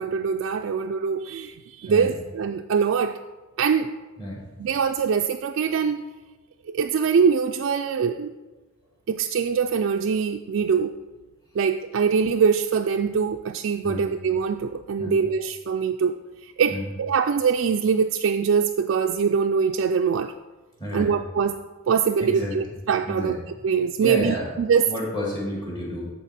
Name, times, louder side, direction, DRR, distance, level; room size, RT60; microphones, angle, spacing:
voice 1, 0.0-3.2 3.6-3.9 4.6-6.0 6.7-8.4 9.1-11.0 11.5-16.2 16.4-20.3 20.9-23.4 23.6-24.9, right 6 dB, 65° right, 4 dB, 0.3 m, -23 dB
voice 2, 1.8-2.2 4.2-4.5 13.8-14.1 15.0-15.3 16.7-16.9 20.8-21.2 22.2-22.6 23.1-23.4 24.0-24.5 24.9-26.1, left 1 dB, 20° left, -4 dB, 2.0 m, -30 dB
13.0 x 4.5 x 4.2 m, 1.2 s
head